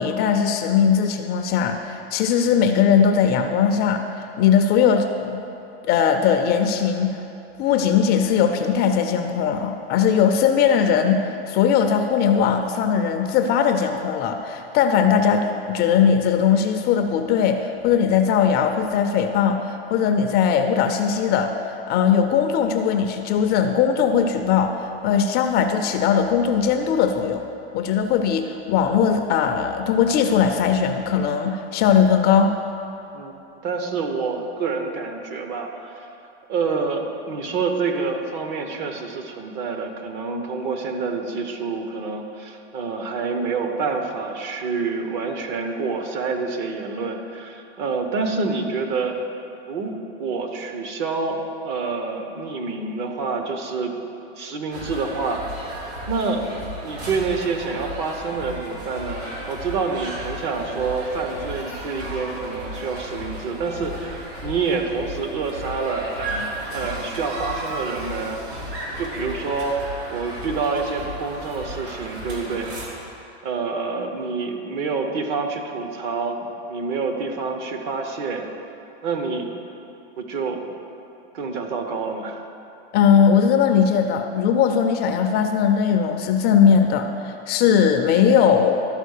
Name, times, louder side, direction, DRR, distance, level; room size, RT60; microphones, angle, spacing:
voice 1, 0.0-5.4 5.9-7.2 7.6-27.4 27.7-32.5 82.9-88.8, left 7 dB, 30° left, 5 dB, 0.5 m, -19 dB
voice 2, 33.6-36.1 36.5-49.2 49.7-53.9 54.4-55.7 56.1-56.4 56.8-68.4 69.0-69.8 70.1-72.7 73.4-78.5 79.0-79.5 80.2-80.6 81.3-82.4, right 4 dB, 50° right, 4 dB, 1.1 m, -27 dB
sound 1, 54.7-72.9, right 1 dB, 80° right, 2.6 m, -34 dB
12.5 x 4.8 x 6.5 m, 2.8 s
supercardioid pair, 135°, 32 cm